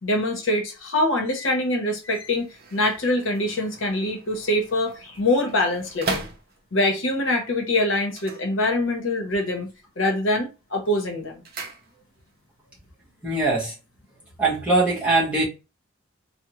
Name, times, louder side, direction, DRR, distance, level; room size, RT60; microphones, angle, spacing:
voice 1, 0.0-6.3 6.7-9.7 10.0-11.4, left 1 dB, 65° left, 0.8 m, -24 dB
sound 1, 2.0-7.0 8.0-9.2 9.4-10.0 10.3-12.4 12.7-12.8, right 3 dB, 45° right, 0.5 m, -38 dB
voice 2, 13.2-13.7 14.4-15.4, right 2 dB, 5° right, 1.1 m, -21 dB
3.5 x 2.0 x 2.9 m
head